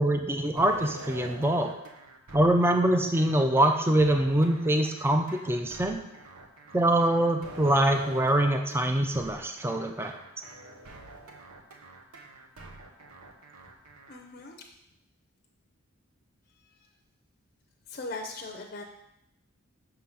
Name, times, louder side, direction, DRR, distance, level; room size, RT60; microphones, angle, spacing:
voice 1, 0.0-1.7 2.3-6.0 6.7-10.1, right 1 dB, 10° right, 5 dB, 0.4 m, -24 dB
sound 1, 0.6-14.2, right 2 dB, 90° right, 1.0 m, -46 dB
voice 2, 14.1-14.6 16.6-16.8 17.9-18.8, left 2 dB, 40° left, 1 dB, 0.6 m, -39 dB
6.2 x 3.9 x 5.7 m, 0.83 s
head